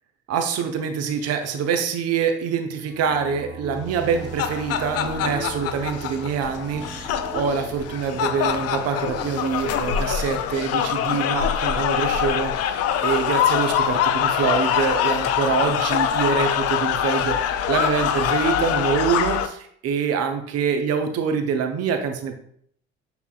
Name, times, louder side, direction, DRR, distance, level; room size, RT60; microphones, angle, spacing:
voice 1, 0.3-22.3, right 6 dB, 50° right, 6 dB, 0.8 m, -25 dB
sound 1, 2.9-10.4, right 4 dB, 15° right, 0.6 m, -39 dB
sound 2, 4.0-19.5, left 9 dB, 50° left, 0.5 m, -24 dB
6.0 x 3.5 x 2.4 m, 0.64 s
hypercardioid pair, 55°, 33 cm